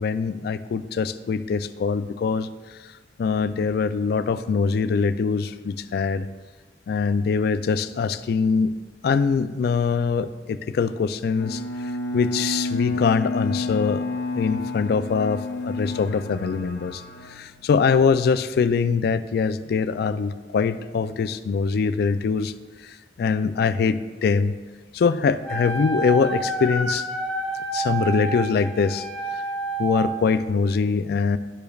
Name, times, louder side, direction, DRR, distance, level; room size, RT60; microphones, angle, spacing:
voice 1, 0.0-2.5 3.2-6.3 6.9-8.7 9.0-11.6 12.1-14.0 14.3-17.0 17.3-22.5 22.8-24.5 24.9-27.1 27.7-29.1 29.8-31.4, left 5 dB, 60° left, 13 dB, 0.3 m, -23 dB
Bowed string instrument, 11.4-18.0, left 2 dB, 80° left, 0.7 m, -30 dB
Wind instrument woodwind instrument, 25.4-30.2, right 2 dB, 5° left, 1.3 m, -29 dB
11.5 x 5.1 x 2.3 m, 1.3 s
head